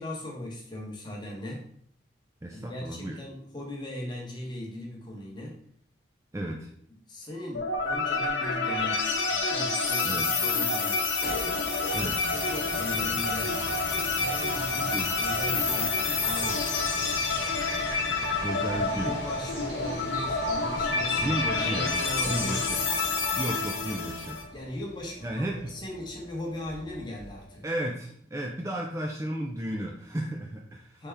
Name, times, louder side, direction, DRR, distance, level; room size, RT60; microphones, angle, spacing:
voice 1, 0.0-1.6 2.5-5.6 7.1-11.0 11.9-13.6 14.1-16.0 16.2-16.7 18.7-22.7 24.5-27.7 31.0-31.1, left 1 dB, 25° left, -1 dB, 0.9 m, -39 dB
voice 2, 2.4-3.2 6.3-6.7 10.0-10.4 11.9-12.3 14.9-15.1 18.4-19.2 21.2-24.4 25.2-25.8 27.6-31.1, right 1 dB, 15° right, 1 dB, 0.3 m, -34 dB
sound 1, 7.5-24.4, left 3 dB, 75° left, 0.8 m, -28 dB
sound 2, 10.9-27.6, left 1 dB, 55° left, 1.2 m, -41 dB
sound 3, 18.6-24.1, right 1 dB, 35° right, 1.3 m, -47 dB
4.2 x 3.4 x 3.3 m, 0.63 s
head